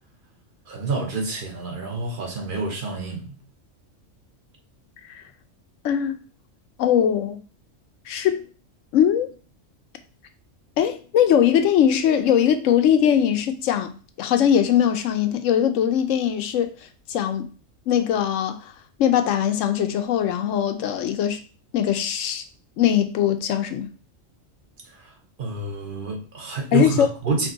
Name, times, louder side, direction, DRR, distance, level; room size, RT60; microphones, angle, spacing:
voice 1, 0.7-3.4 24.8-27.5, right 3 dB, 45° right, 1.1 m, -28 dB
voice 2, 6.8-7.4 8.1-8.4 8.9-9.3 10.8-13.9 14.2-16.7 17.1-17.5 17.9-18.6 19.0-21.4 21.7-22.4 22.8-23.9 26.7-27.1, left 9 dB, 80° left, 1.0 m, -20 dB
4.5 x 2.9 x 3.9 m
omnidirectional pair, 1.3 m